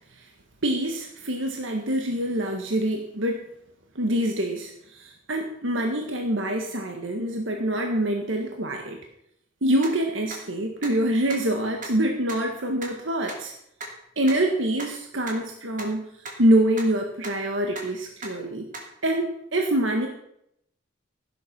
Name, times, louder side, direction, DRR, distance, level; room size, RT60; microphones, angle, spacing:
voice 1, 0.6-3.5 3.9-9.0 9.6-13.5 14.1-16.0 16.4-18.7 19.0-20.1, right 1 dB, 80° right, 2 dB, 1.6 m, -25 dB
sound 1, 9.8-9.9 10.3-10.4 10.8-10.9 11.3-11.4 11.8-11.9 12.3-12.4 12.8-12.9 13.3-13.4 13.8-13.9 14.3-14.4 14.8-14.9 15.3-15.4 15.8-15.9 16.2-16.3 16.7-16.8 17.2-17.3 17.7-17.8 18.2-18.3 18.7-18.8, right 3 dB, 45° right, 3.1 m, -36 dB
16.0 x 7.9 x 6.0 m, 0.75 s
head